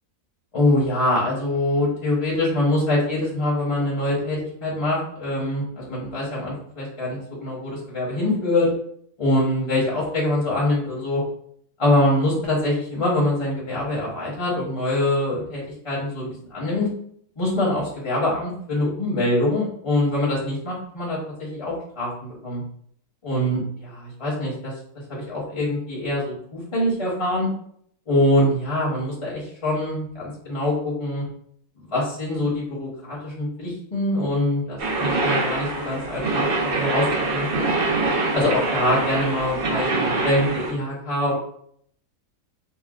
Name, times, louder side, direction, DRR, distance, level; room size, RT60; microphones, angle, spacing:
voice 1, 0.5-8.7 9.2-11.2 11.8-16.9 17.4-22.6 23.2-24.7 25.1-27.5 28.1-31.2 31.9-37.1 37.3-37.7 38.3-41.3, left 1 dB, 25° left, -6 dB, 0.8 m, -24 dB
sound 1, 34.8-40.7, right 3 dB, 60° right, 0.6 m, -24 dB
4.2 x 2.2 x 2.4 m, 0.66 s
omnidirectional pair, 1.7 m